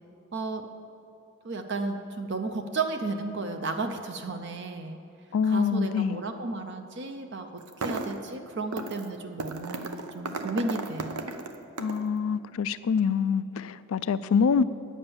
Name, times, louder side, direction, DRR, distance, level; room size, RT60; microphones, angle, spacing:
voice 1, 0.3-0.7 1.4-5.0 5.4-11.3, right 3 dB, 50° right, 6 dB, 0.5 m, -33 dB
voice 2, 5.3-6.2 11.8-14.6, left 6 dB, 70° left, 15 dB, 0.3 m, -25 dB
sound 1, 7.6-8.3 8.7-9.1 9.4-12.1, right 3 dB, 90° right, 0.7 m, -35 dB
9.8 x 7.3 x 7.0 m, 2.8 s
head